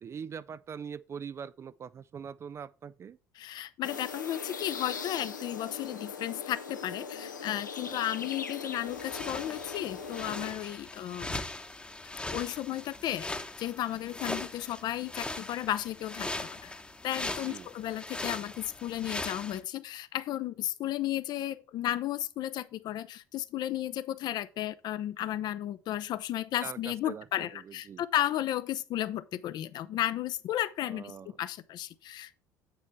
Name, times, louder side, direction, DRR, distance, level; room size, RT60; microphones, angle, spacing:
voice 1, 0.0-3.2 7.9-8.0 17.4-17.7 26.6-28.0 30.8-31.4, right 7 dB, 30° right, 0.3 m, -43 dB
voice 2, 3.4-11.4 12.3-13.3 13.6-16.8 17.0-31.1 31.4-32.4, left 13 dB, 45° left, 0.6 m, -34 dB
sound 1, 3.8-10.5, left 5 dB, 80° left, 0.7 m, -40 dB
sound 2, 7.1-7.8 9.5-10.1 12.0-12.7 14.5-15.1 16.2-16.5, left 8 dB, 65° left, 1.5 m, -62 dB
sound 3, 8.9-19.6, left 2 dB, 10° left, 0.9 m, -40 dB
8.2 x 6.9 x 3.2 m
figure-of-eight pair, 60°, 10 cm